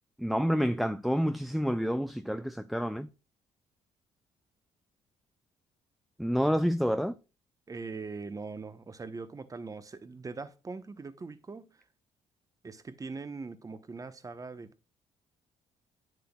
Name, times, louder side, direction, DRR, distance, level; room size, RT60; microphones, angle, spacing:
voice 1, 0.2-3.1 6.2-7.1, equal, ahead, 0.5 m, -28 dB
voice 2, 7.7-11.8 12.6-14.9, right 4 dB, 25° right, 0.9 m, -41 dB
9.5 x 7.7 x 2.3 m
cardioid pair, 85°, 13 cm